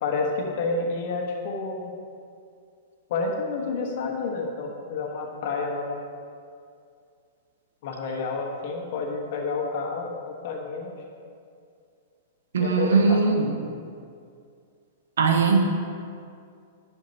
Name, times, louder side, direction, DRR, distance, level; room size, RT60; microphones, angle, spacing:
voice 1, 0.0-1.9 3.1-6.0 7.8-11.0 12.6-13.2, left 4 dB, 55° left, 1 dB, 1.3 m, -29 dB
voice 2, 12.5-13.5 15.2-15.6, right 4 dB, 70° right, 4 dB, 0.9 m, -20 dB
10.5 x 5.8 x 2.9 m, 2.3 s
figure-of-eight pair, 105°, 0 cm